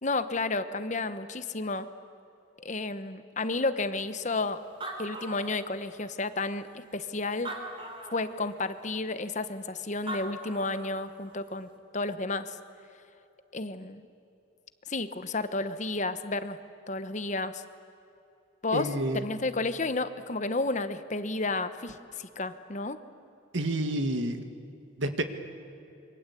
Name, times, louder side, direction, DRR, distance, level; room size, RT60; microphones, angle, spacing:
voice 1, 0.0-1.9 2.6-4.6 5.0-7.5 8.1-12.6 13.5-14.0 14.9-16.6 16.9-17.6 18.6-18.9 19.1-23.0, left 3 dB, 35° left, 11 dB, 1.0 m, -32 dB
Animal, 4.4-4.5 4.6-6.1 6.7-6.8 7.3-8.3 9.8-9.9 10.1-11.0, right 2 dB, 25° right, 3.1 m, -40 dB
voice 2, 18.7-19.3 23.5-24.4 25.0-25.2, right 1 dB, 70° right, 7 dB, 1.9 m, -29 dB
27.0 x 24.0 x 8.4 m, 2.8 s
head